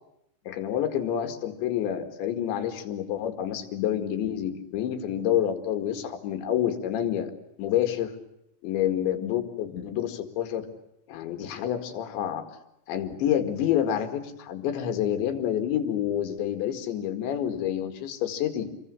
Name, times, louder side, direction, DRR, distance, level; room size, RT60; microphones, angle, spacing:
voice 1, 0.5-7.3 7.6-8.1 8.6-10.7 11.1-12.4 12.9-18.7, left 10 dB, 75° left, 7 dB, 4.4 m, -28 dB
28.0 x 22.5 x 8.4 m, 0.82 s
omnidirectional pair, 5.2 m